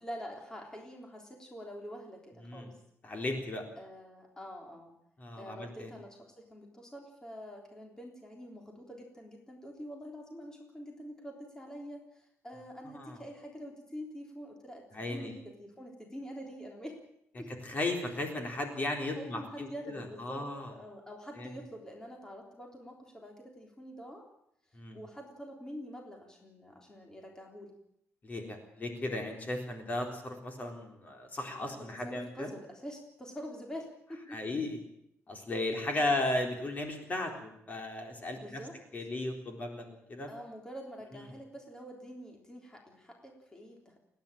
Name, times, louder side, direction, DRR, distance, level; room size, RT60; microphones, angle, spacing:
voice 1, 0.0-2.8 3.8-4.9 5.4-17.0 17.3-17.5 19.2-24.3 24.9-27.7 31.5-34.4 36.0-36.2 38.4-38.7 40.3-44.0, equal, 10° left, 1 dB, 3.6 m, -46 dB
voice 2, 3.0-3.6 5.2-5.9 12.9-13.2 14.9-15.3 17.6-20.7 21.4-21.6 24.7-25.0 28.2-32.5 34.3-34.8 35.3-38.6 38.9-40.3, left 2 dB, 35° left, 3 dB, 3.9 m, -35 dB
29.5 x 10.5 x 8.9 m, 0.76 s
cardioid pair, 135°, 5 cm